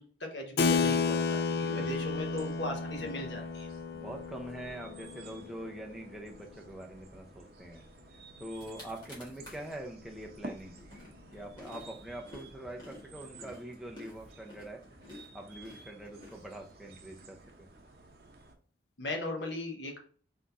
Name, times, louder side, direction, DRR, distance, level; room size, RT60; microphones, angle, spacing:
voice 1, 0.0-3.7 19.0-20.0, left 1 dB, 80° left, 2 dB, 1.2 m, -38 dB
Keyboard (musical), 0.6-6.6, left 4 dB, 60° left, 0.4 m, -32 dB
voice 2, 1.7-2.1 3.9-7.8 8.4-10.8 11.3-14.8 15.3-17.7, right 1 dB, ahead, 0 dB, 0.7 m, -44 dB
sound 1, 1.8-18.5, right 2 dB, 55° right, 0.8 m, -53 dB
sound 2, 8.2-8.3 8.5-9.8 10.2-17.0, left 2 dB, 25° left, 1.6 m, -52 dB
4.4 x 3.7 x 2.6 m, 0.44 s
head